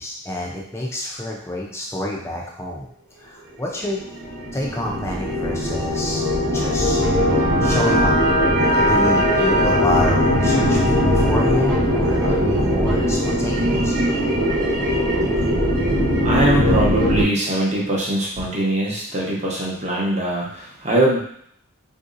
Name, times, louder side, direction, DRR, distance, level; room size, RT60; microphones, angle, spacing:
voice 1, 0.0-2.9 3.2-4.0 4.5-6.2 6.5-7.0 7.6-8.2 8.8-14.0, left 1 dB, 15° left, -2 dB, 0.4 m, -28 dB
sound 1, 3.8-17.2, equal, 85° right, 1.2 m, -19 dB
voice 2, 16.2-21.2, right 1 dB, 35° right, -4 dB, 0.8 m, -21 dB
3.7 x 2.6 x 2.5 m, 0.67 s
head